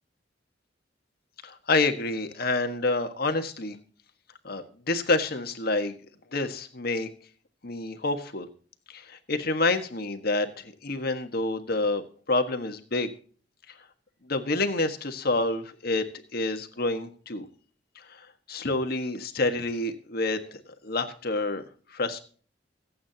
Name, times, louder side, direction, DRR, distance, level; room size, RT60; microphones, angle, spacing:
voice 1, 1.4-3.8 4.4-6.0 6.3-7.1 7.6-8.5 8.9-13.1 14.2-16.0 16.3-17.5 17.9-21.6 21.9-22.2, left 2 dB, 55° left, 7 dB, 1.6 m, -28 dB
24.5 x 8.6 x 2.9 m, 0.42 s
head